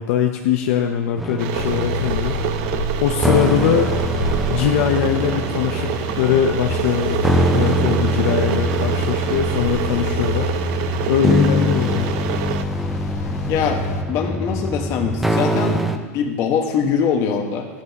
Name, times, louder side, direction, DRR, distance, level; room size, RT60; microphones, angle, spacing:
voice 1, 0.0-2.4 3.0-3.9 4.5-10.8 11.0-12.1, left 9 dB, 65° left, 4 dB, 0.8 m, -21 dB
sound 1, 1.2-16.0, right 1 dB, ahead, 0.6 m, -24 dB
Water / Boiling, 1.4-12.6, right 13 dB, 50° right, 0.5 m, -27 dB
sound 2, 1.5-14.0, left 3 dB, 90° left, 1.2 m, -28 dB
voice 2, 13.5-13.8 14.1-17.7, left 6 dB, 40° left, 3 dB, 1.5 m, -22 dB
13.5 x 11.5 x 3.0 m, 1.3 s
supercardioid pair, 150°, 8 cm